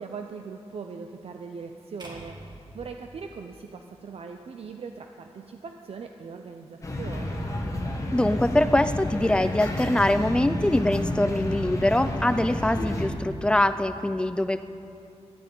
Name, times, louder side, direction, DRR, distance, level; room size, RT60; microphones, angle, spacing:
voice 1, 0.0-7.5, right 5 dB, 60° right, 5 dB, 0.6 m, -40 dB
sound 1, 2.0-4.3, right 1 dB, 40° right, 2.0 m, -46 dB
sound 2, 6.8-13.1, left 1 dB, 30° left, 1.5 m, -30 dB
voice 2, 8.1-14.6, left 1 dB, 10° left, 11 dB, 0.4 m, -23 dB
12.5 x 8.8 x 9.3 m, 2.7 s
wide cardioid pair, 165°, 11 cm